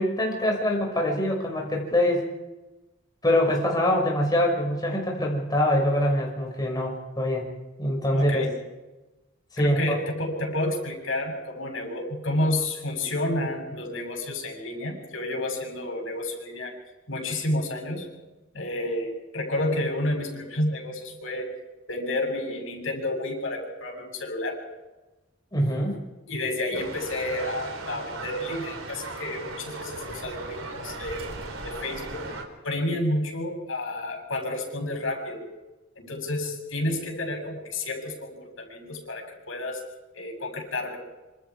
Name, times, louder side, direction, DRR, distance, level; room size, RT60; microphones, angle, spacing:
voice 1, 0.0-2.3 3.2-7.5 7.8-8.5 9.5-10.0 25.5-26.0, left 1 dB, 20° left, -1 dB, 5.9 m, -24 dB
voice 2, 8.1-8.5 9.6-16.7 17.1-18.1 18.5-21.5 21.9-24.6 26.3-31.3 31.6-32.2 32.6-35.5 36.0-39.8 40.1-41.0, left 1 dB, 75° left, 2 dB, 7.2 m, -30 dB
sound 1, 26.7-32.4, right 3 dB, 90° right, 3.8 m, -37 dB
26.5 x 26.0 x 4.8 m, 1.1 s
head